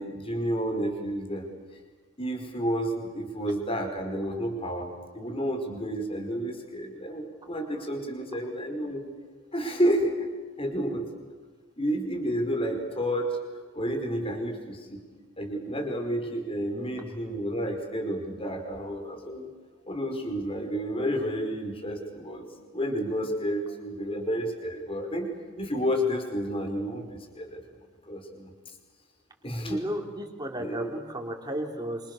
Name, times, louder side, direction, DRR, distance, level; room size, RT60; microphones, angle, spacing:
voice 1, 0.0-1.5 2.2-4.9 5.1-9.0 9.5-10.2 10.6-11.1 11.8-13.4 13.7-15.0 15.4-19.5 19.9-22.4 22.7-25.3 25.6-27.6 28.1-28.5 29.4-29.9 30.6-30.9, equal, 25° left, 3 dB, 5.0 m, -30 dB
voice 2, 29.6-32.0, right 1 dB, 20° right, 2 dB, 3.9 m, -33 dB
27.0 x 27.0 x 6.8 m, 1.4 s
head